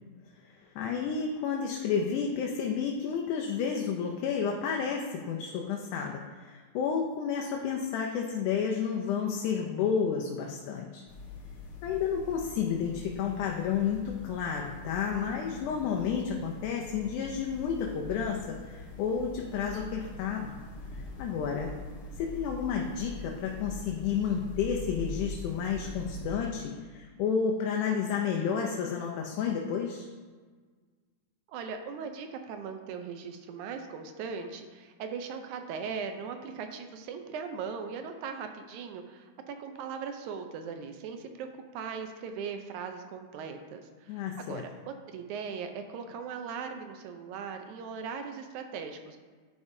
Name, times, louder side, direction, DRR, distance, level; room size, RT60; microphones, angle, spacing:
voice 1, 0.8-11.0 11.8-20.6 20.9-21.7 22.2-30.1 44.1-44.6, left 7 dB, 85° left, 0 dB, 2.1 m, -31 dB
sound 1, 11.1-26.4, left 1 dB, 65° left, 1.4 m, -43 dB
voice 2, 31.5-44.2 44.5-49.2, right 6 dB, 80° right, 6 dB, 2.0 m, -39 dB
10.5 x 5.1 x 2.7 m, 1.5 s
omnidirectional pair, 3.5 m